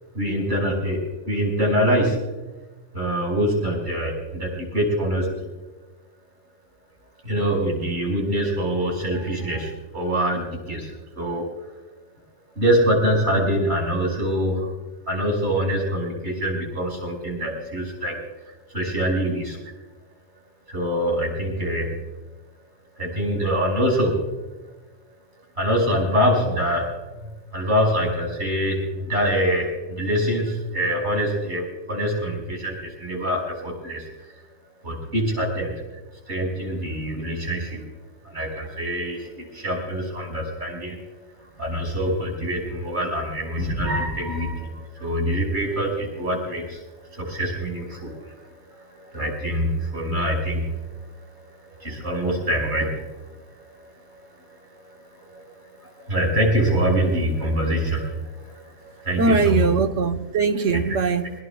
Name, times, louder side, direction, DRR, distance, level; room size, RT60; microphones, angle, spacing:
voice 1, 0.1-2.2 2.9-5.3 7.2-11.5 12.6-14.7 15.1-18.2 18.7-19.6 20.7-22.0 23.0-24.2 25.6-34.1 34.8-36.0 36.3-37.8 38.2-41.0 41.6-50.8 51.8-59.7 60.7-60.8, equal, 70° right, 5.9 m, -25 dB
voice 2, 59.2-61.3, right 4 dB, 85° right, 1.4 m, -21 dB
22.5 x 20.5 x 2.3 m
omnidirectional pair, 1.2 m